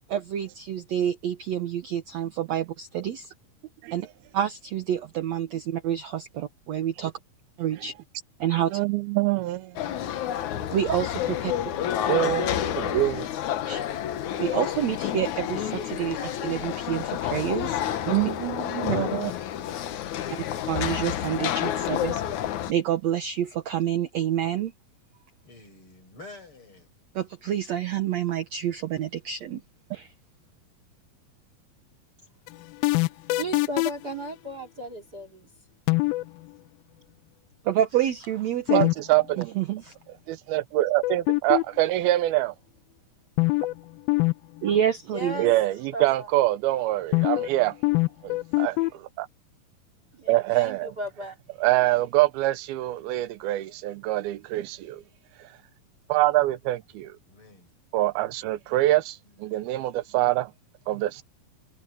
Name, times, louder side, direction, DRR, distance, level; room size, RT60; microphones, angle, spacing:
voice 1, 0.1-3.3 3.9-4.1 4.3-7.1 7.6-7.9 8.4-8.7 10.7-11.5 13.7-13.8 14.4-17.8 18.9-19.0 20.7-22.2 22.7-24.7 27.2-29.6 29.9-30.1 37.6-38.9 39.4-39.9 44.6-45.4, right 10 dB, 65° right, 1.9 m, -28 dB
voice 2, 8.7-10.1 12.0-13.2 18.1-19.3 38.7-39.5 40.3-42.5 45.4-47.8 48.2-49.3 50.3-50.9 51.6-55.0 56.1-57.2 57.9-60.5 60.9-61.2, right 16 dB, 90° right, 2.8 m, -25 dB
sound 1, 9.8-22.7, left 11 dB, 65° left, 2.2 m, -29 dB
voice 3, 25.4-26.9 57.2-57.7 59.2-59.6, left 2 dB, 35° left, 8.9 m, -48 dB
sound 2, 32.5-34.1 35.9-36.3 38.7-38.9 39.2-39.3 41.0-41.8 43.4-43.8 44.1-44.3 44.6-44.7 47.1-47.5 47.8-48.9, left 23 dB, 85° left, 2.3 m, -23 dB
voice 4, 33.4-35.5 43.4-43.5 45.1-45.5 45.9-46.3 50.1-51.4, right 1 dB, 30° right, 2.9 m, -35 dB
omnidirectional pair, 4.2 m